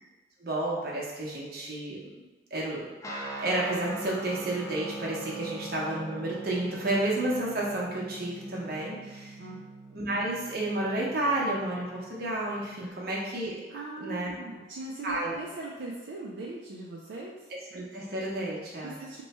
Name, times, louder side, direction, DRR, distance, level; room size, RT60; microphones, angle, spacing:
voice 1, 0.4-2.0 2.5-2.9 3.4-9.4 9.9-13.6 14.0-14.3 15.0-15.3 17.7-19.0, right 1 dB, 55° right, -4 dB, 0.8 m, -31 dB
Guitar, 3.0-12.8, right 2 dB, 15° left, 0.3 m, -42 dB
voice 2, 9.4-9.7 12.8-13.0 13.7-17.5 18.8-19.2, right 3 dB, 75° right, -3 dB, 0.4 m, -40 dB
3.0 x 2.2 x 4.1 m, 1.2 s
head